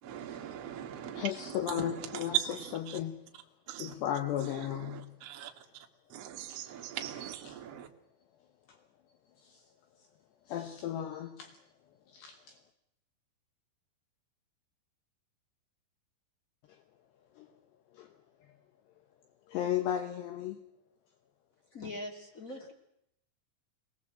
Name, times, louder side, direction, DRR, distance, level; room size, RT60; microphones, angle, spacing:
voice 1, 0.0-3.0 3.7-3.9 4.4-7.9, right 11 dB, 55° right, 2 dB, 1.8 m, -40 dB
voice 2, 1.2-2.4 2.9-3.3 3.8-5.2 6.5-6.6 8.7-8.8 9.4-9.6 10.5-11.6 12.1-12.6 17.4-17.5 17.9-18.1 19.5-20.6, left 11 dB, 70° left, 8 dB, 2.9 m, -35 dB
voice 3, 21.7-22.7, left 1 dB, 35° left, 3 dB, 1.2 m, -42 dB
23.5 x 19.5 x 7.7 m, 0.78 s
omnidirectional pair, 5.6 m